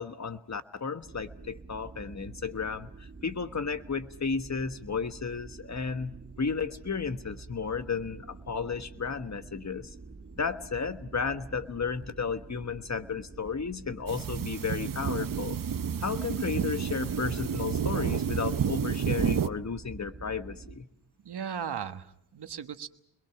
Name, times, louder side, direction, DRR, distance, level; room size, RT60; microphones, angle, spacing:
voice 1, 0.0-9.9 10.3-15.6 16.0-20.9, left 5 dB, 40° left, 10 dB, 1.4 m, -33 dB
sound 1, 1.0-20.8, right 4 dB, 35° right, 3.3 m, -48 dB
sound 2, 14.1-19.5, right 7 dB, 50° right, 0.8 m, -30 dB
voice 2, 21.2-22.9, right 8 dB, 70° right, 9 dB, 1.3 m, -37 dB
29.5 x 22.0 x 6.0 m, 0.77 s
cardioid pair, 65°, 41 cm